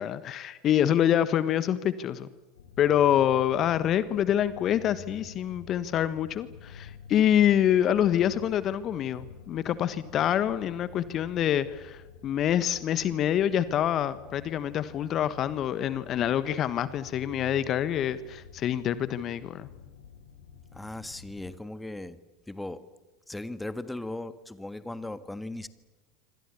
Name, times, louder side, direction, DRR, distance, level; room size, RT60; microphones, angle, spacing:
voice 1, 0.0-2.3 2.8-19.7, left 10 dB, 40° left, 15 dB, 1.3 m, -26 dB
sound 1, 2.5-21.6, left 5 dB, 75° left, 4.0 m, -49 dB
voice 2, 20.7-22.2 22.5-22.9 23.3-25.7, left 2 dB, 5° left, 13 dB, 1.6 m, -37 dB
26.5 x 26.0 x 7.1 m, 1.1 s
figure-of-eight pair, 80°, 0 cm